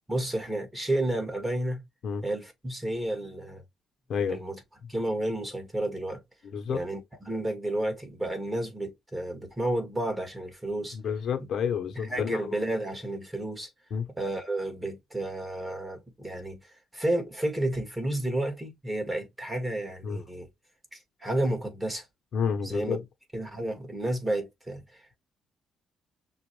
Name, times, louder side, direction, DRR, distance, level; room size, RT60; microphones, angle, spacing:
voice 1, 0.1-1.8 2.2-3.6 4.3-4.6 4.9-6.2 6.7-11.0 11.4-11.5 11.9-13.7 14.2-20.5 20.9-22.1 22.6-23.0 23.3-25.2, right 1 dB, 15° right, 1.9 m, -31 dB
voice 2, 6.4-6.8 11.0-12.4 13.9-14.1 20.0-20.2 22.3-23.0, left 7 dB, 65° left, 0.9 m, -29 dB
6.1 x 2.5 x 3.2 m
cardioid pair, 90°, 0 cm